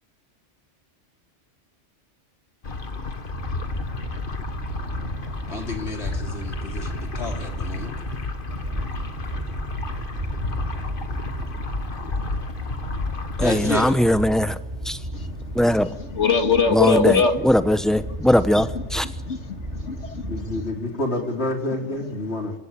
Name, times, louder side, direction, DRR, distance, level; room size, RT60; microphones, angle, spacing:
sound 1, 2.6-13.6, left 4 dB, 50° left, 1.7 m, -32 dB
sound 2, 3.3-20.6, right 1 dB, 70° right, 5.6 m, -34 dB
voice 1, 5.5-7.9 13.4-14.0 20.3-22.5, left 2 dB, 65° left, 3 dB, 4.0 m, -29 dB
voice 2, 13.4-14.6 14.9-15.0 15.5-15.9 16.7-18.7 18.9-19.0, equal, ahead, 11 dB, 1.0 m, -20 dB
voice 3, 15.1-17.4 18.1-18.2 18.5-20.6, left 5 dB, 85° left, 6 dB, 2.3 m, -24 dB
27.5 x 16.5 x 8.6 m, 1.0 s
omnidirectional pair, 1.2 m